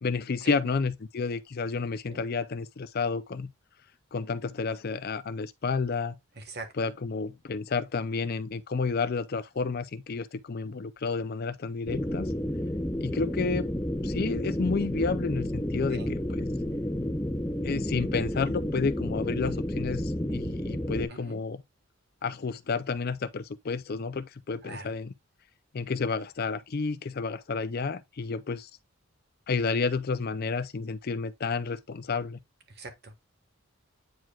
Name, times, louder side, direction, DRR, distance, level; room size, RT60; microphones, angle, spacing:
voice 1, 0.0-3.5 4.1-6.2 6.8-12.3 13.0-13.7 14.0-16.5 17.6-21.6 22.2-25.1 25.7-28.7 29.5-32.4, left 4 dB, 45° left, 0.5 m, -31 dB
voice 2, 6.4-6.7 15.9-16.1 21.1-21.4 24.6-24.9 32.8-33.1, right 3 dB, 50° right, 1.6 m, -42 dB
sound 1, 11.9-21.0, equal, 10° left, 0.7 m, -31 dB
9.0 x 4.7 x 2.3 m
head